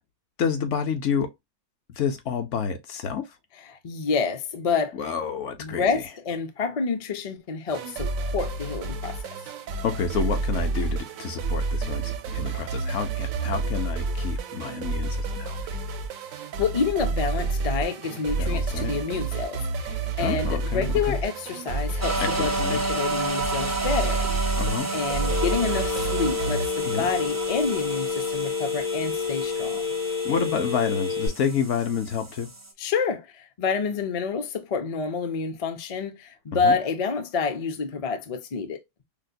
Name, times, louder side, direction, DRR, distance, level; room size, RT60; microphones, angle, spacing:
voice 1, 0.4-1.3 1.9-3.3 4.9-6.0 9.8-15.6 18.4-18.9 20.2-21.2 22.2-22.9 24.6-24.9 26.9-27.1 30.2-32.5 36.6-36.7, left 6 dB, 65° left, 1.0 m, -29 dB
voice 2, 3.6-5.0 5.6-9.2 16.6-24.3 24.9-29.8 32.8-38.8, left 5 dB, 50° left, 0.4 m, -28 dB
sound 1, 7.7-26.7, right 3 dB, 90° right, 1.0 m, -29 dB
sound 2, 22.0-32.7, right 3 dB, 25° right, 0.4 m, -31 dB
Telephone, 25.3-31.3, left 5 dB, 80° left, 3.3 m, -29 dB
4.9 x 2.2 x 2.6 m
omnidirectional pair, 1.4 m